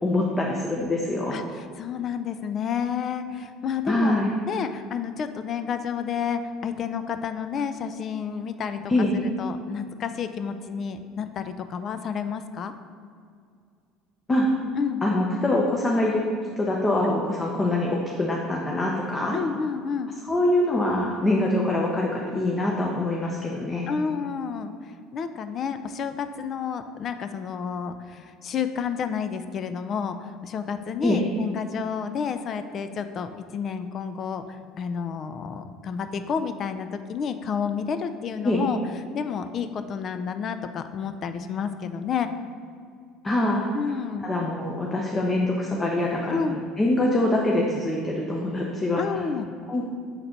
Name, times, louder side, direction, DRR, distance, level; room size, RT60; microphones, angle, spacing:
voice 1, 0.0-1.4 3.9-4.3 8.9-9.1 14.3-14.5 15.0-16.3 16.6-19.4 20.3-23.9 31.0-31.2 38.4-38.6 43.2-43.7 44.2-49.2 49.7-49.8, left 1 dB, 25° left, -2 dB, 0.8 m, -24 dB
voice 2, 1.3-8.9 9.4-12.7 14.8-15.0 19.3-20.1 23.9-38.8 39.1-42.3 43.7-44.3 46.3-46.6 49.0-49.5, left 6 dB, 45° left, 10 dB, 0.4 m, -30 dB
6.6 x 4.0 x 4.4 m, 2.2 s
supercardioid pair, 85°, 0 cm